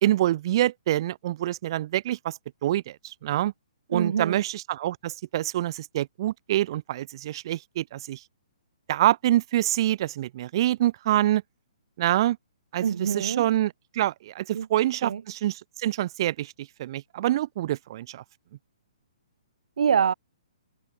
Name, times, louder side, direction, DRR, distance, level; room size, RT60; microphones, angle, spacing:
voice 1, 0.0-3.5 3.9-8.2 8.9-11.4 12.0-12.4 12.7-18.2, right 13 dB, 40° right, 2.6 m, -26 dB
voice 2, 3.9-4.4 12.8-13.5 14.5-14.7 15.0-15.2 19.8-20.1, right 7 dB, 65° right, 2.5 m, -25 dB
hypercardioid pair, 160°, 4 cm